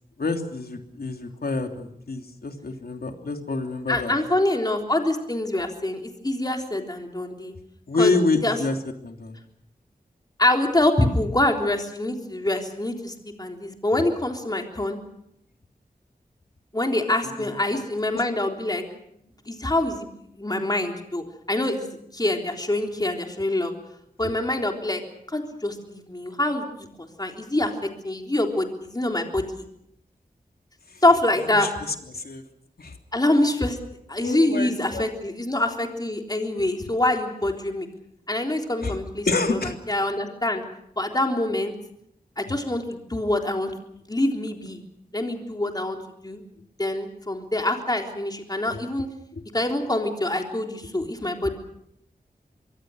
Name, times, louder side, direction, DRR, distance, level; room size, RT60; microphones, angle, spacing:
voice 1, 0.2-4.1 7.9-8.8 9.0-9.4 13.9-14.0 17.5-17.8 18.1-18.2 30.9-31.0 31.4-31.7 32.1-32.4 32.8-33.0 34.2-35.0 38.8-39.0 39.2-39.7 49.3-49.4, left 3 dB, 75° left, 4 dB, 3.1 m, -27 dB
voice 2, 3.9-7.5 8.0-8.1 8.4-8.6 10.4-15.0 16.7-18.8 19.5-20.1 20.4-21.9 22.1-23.7 24.2-25.0 25.3-26.7 27.0-29.7 31.0-31.7 33.1-33.8 34.1-37.9 38.3-39.6 39.9-40.6 41.0-41.7 42.4-43.7 44.1-44.8 45.1-46.4 46.8-49.1 49.5-51.5, left 1 dB, 25° left, 3 dB, 3.6 m, -25 dB
25.5 x 23.5 x 6.4 m, 0.74 s
wide cardioid pair, 80°, 16 cm